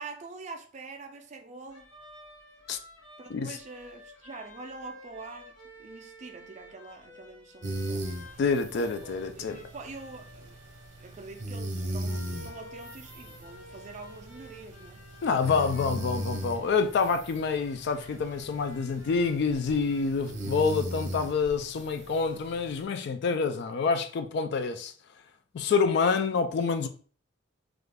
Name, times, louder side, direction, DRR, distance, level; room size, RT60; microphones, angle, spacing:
voice 1, 0.0-1.9 3.2-8.1 8.7-10.6 11.0-15.1, right 3 dB, 35° right, 0.4 m, -45 dB
sound 1, 1.7-20.3, left 2 dB, 90° left, 1.1 m, -52 dB
sound 2, 7.6-22.8, right 1 dB, 60° right, 0.8 m, -38 dB
voice 2, 8.4-9.6 15.2-24.9 25.5-26.9, left 5 dB, 55° left, 0.3 m, -27 dB
2.4 x 2.3 x 3.3 m
head